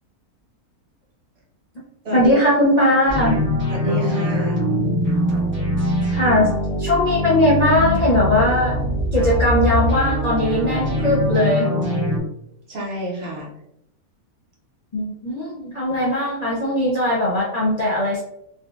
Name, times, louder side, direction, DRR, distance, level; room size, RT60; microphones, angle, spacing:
voice 1, 2.1-3.4 6.1-6.5 6.8-8.8 9.1-11.7 14.9-18.2, left 1 dB, 45° left, -6 dB, 0.5 m, -19 dB
sound 1, 3.1-12.2, left 1 dB, 10° right, 0.7 m, -22 dB
voice 2, 3.7-4.8 5.3-5.4 12.7-13.5, right 1 dB, 50° right, -4 dB, 0.9 m, -29 dB
3.8 x 2.3 x 2.4 m, 0.77 s
omnidirectional pair, 1.6 m